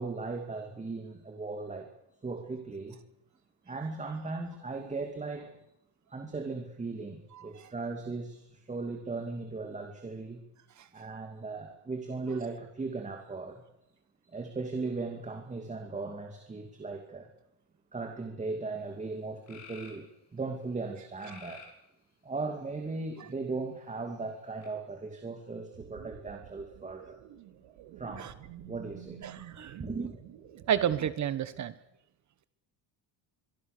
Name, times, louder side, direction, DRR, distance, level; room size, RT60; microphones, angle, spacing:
voice 1, 0.0-1.9 2.2-3.0 3.7-5.5 6.1-10.4 10.9-13.6 14.2-17.3 17.9-20.1 20.3-21.6 22.2-27.2 28.0-28.3 28.6-29.2 29.8-30.1, right 3 dB, 15° right, 4 dB, 2.6 m, -37 dB
voice 2, 7.4-7.7 28.2-28.3 29.2-29.8 30.7-31.7, right 9 dB, 40° right, 14 dB, 1.4 m, -31 dB
sound 1, 18.8-18.9 19.5-20.0 21.2-21.8 22.6-23.3 24.6-24.7, left 5 dB, 40° left, 6.4 m, -50 dB
sound 2, 25.7-31.1, right 11 dB, 85° right, 3.9 m, -49 dB
24.0 x 24.0 x 6.8 m, 0.80 s
cardioid pair, 155°, 43 cm